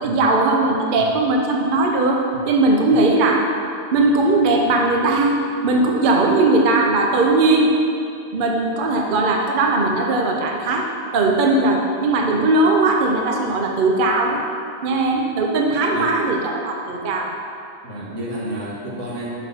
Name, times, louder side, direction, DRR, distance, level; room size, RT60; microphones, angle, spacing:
voice 1, 0.0-3.5 3.9-5.4 5.6-7.7 8.3-10.9 11.1-14.4 14.8-17.3, right 2 dB, 50° right, 1 dB, 0.8 m, -18 dB
voice 2, 17.8-19.3, equal, 75° right, -4 dB, 1.6 m, -30 dB
6.1 x 5.5 x 5.4 m, 2.5 s
omnidirectional pair, 1.3 m